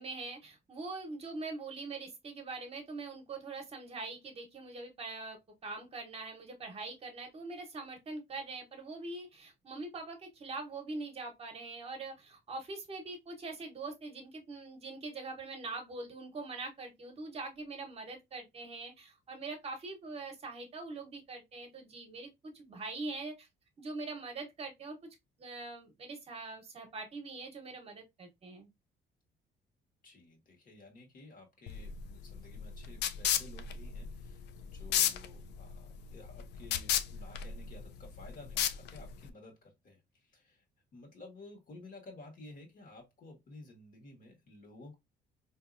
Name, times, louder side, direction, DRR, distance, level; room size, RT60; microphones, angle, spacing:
voice 1, 0.0-22.3 22.5-23.5 23.8-25.0 25.4-28.7, right 3 dB, 35° right, 0.9 m, -43 dB
voice 2, 30.0-40.6 40.9-44.9, left 2 dB, 50° left, 1.4 m, -53 dB
sound 1, 31.7-39.3, left 10 dB, 70° left, 0.4 m, -34 dB
3.9 x 2.7 x 2.5 m
cardioid pair, 140°, 18 cm